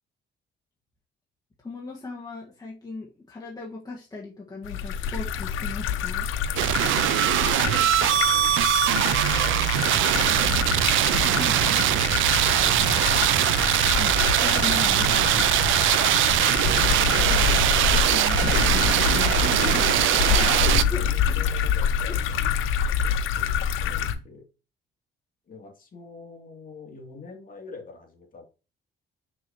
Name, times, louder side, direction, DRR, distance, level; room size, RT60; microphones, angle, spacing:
voice 1, 1.6-6.3 11.3-11.6 14.0-15.1 16.9-17.5 17.8-18.8 19.1-19.8 20.1-21.3 22.1-22.2, left 3 dB, 20° left, 1.7 m, -37 dB
sound 1, 4.6-24.1, left 8 dB, 85° left, 0.8 m, -26 dB
sound 2, 6.6-20.8, right 13 dB, 80° right, 0.5 m, -22 dB
voice 2, 7.4-10.9 11.2-11.7 12.0-13.6 15.1-15.6 17.3-17.6 19.6-24.4 25.4-28.4, left 4 dB, 45° left, 2.7 m, -45 dB
7.1 x 6.3 x 3.1 m
cardioid pair, 90°, 20 cm